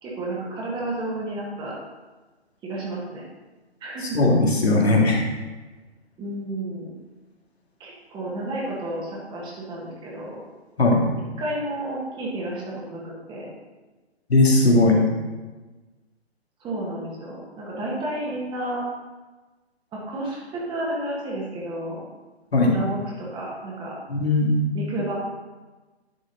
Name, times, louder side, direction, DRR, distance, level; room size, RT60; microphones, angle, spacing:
voice 1, 0.0-1.8 2.6-3.2 3.8-4.3 6.2-6.9 7.8-10.4 11.4-13.5 16.6-18.8 19.9-22.0 22.6-23.9 24.7-25.1, right 1 dB, 15° right, -4 dB, 1.7 m, -31 dB
voice 2, 4.0-5.2 10.8-11.1 14.3-15.0 22.5-22.7 24.1-24.7, left 2 dB, 70° left, -1 dB, 2.1 m, -18 dB
11.0 x 4.8 x 4.1 m, 1.2 s
figure-of-eight pair, 130°, 33 cm